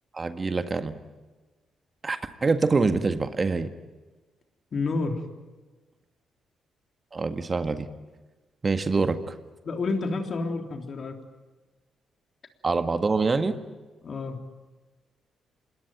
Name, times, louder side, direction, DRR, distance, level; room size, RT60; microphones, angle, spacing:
voice 1, 0.1-0.9 2.0-3.7 7.1-7.9 8.6-9.3 12.6-13.5, right 4 dB, 35° right, 9 dB, 1.7 m, -25 dB
voice 2, 4.7-5.2 9.6-11.2 14.0-14.4, left 3 dB, 50° left, 4 dB, 3.6 m, -29 dB
27.0 x 21.0 x 9.2 m, 1.2 s
hypercardioid pair, 45°, 0 cm